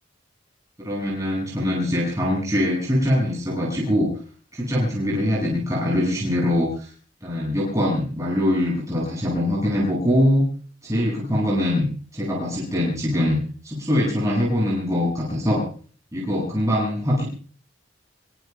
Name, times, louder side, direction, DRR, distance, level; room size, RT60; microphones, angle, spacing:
voice 1, 0.8-4.1 4.5-6.9 7.2-10.5 10.8-15.6 16.1-17.2, left 1 dB, 15° right, -5 dB, 6.6 m, -23 dB
27.0 x 23.5 x 2.3 m, 0.43 s
head